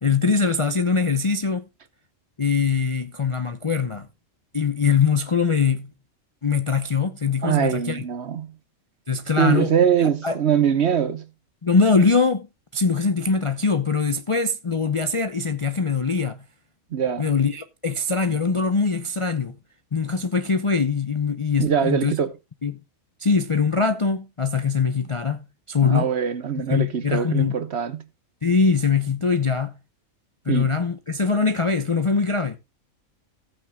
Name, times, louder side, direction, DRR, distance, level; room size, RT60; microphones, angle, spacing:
voice 1, 0.0-1.6 2.4-4.1 4.5-5.9 6.4-8.0 9.1-9.7 10.2-10.4 11.6-12.5 12.7-16.4 17.2-19.6 19.9-22.1 22.6-22.8 23.2-26.1 26.7-27.5 28.4-29.7 30.5-32.6, left 5 dB, 35° left, 0.5 m, -22 dB
voice 2, 7.4-8.5 9.4-11.2 16.9-17.3 21.6-22.3 25.8-28.0 30.5-30.7, right 8 dB, 55° right, 1.1 m, -22 dB
15.5 x 8.8 x 2.2 m
omnidirectional pair, 1.5 m